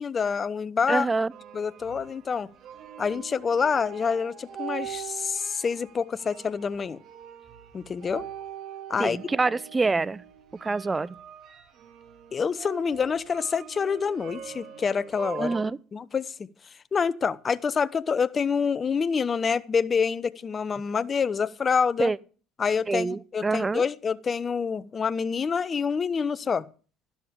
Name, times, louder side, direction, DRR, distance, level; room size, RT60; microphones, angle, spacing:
voice 1, 0.0-1.1 1.5-2.5 3.0-7.0 7.7-8.2 8.9-9.2 12.3-15.6 15.9-16.3 16.9-22.1 22.6-26.7, left 6 dB, 35° left, 0.8 m, -27 dB
voice 2, 0.9-1.3 9.0-10.2 10.6-11.1 15.4-15.8 22.0-22.2 22.9-23.8, right 3 dB, 20° right, 0.6 m, -26 dB
sound 1, 1.3-15.6, right 9 dB, 55° right, 2.4 m, -43 dB
12.5 x 11.5 x 3.7 m
hypercardioid pair, 80°, 0 cm